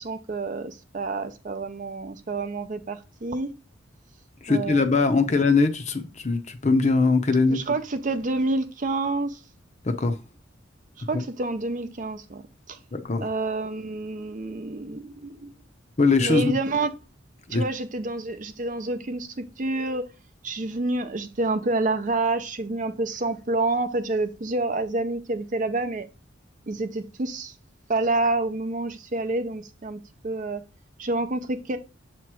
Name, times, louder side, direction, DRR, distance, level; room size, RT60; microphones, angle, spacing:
voice 1, 0.0-3.5 4.5-5.0 7.5-9.4 11.1-12.4 12.7-12.8 13.2-15.5 16.2-16.9 17.5-20.0 20.4-26.1 26.7-27.5 27.9-30.6 31.0-31.8, right 2 dB, 40° right, 0.6 m, -28 dB
voice 2, 4.4-7.6 9.8-10.2 11.1-11.2 12.9-13.3 16.0-16.6 17.5-17.6, left 3 dB, 35° left, 0.6 m, -21 dB
6.9 x 3.0 x 4.7 m
head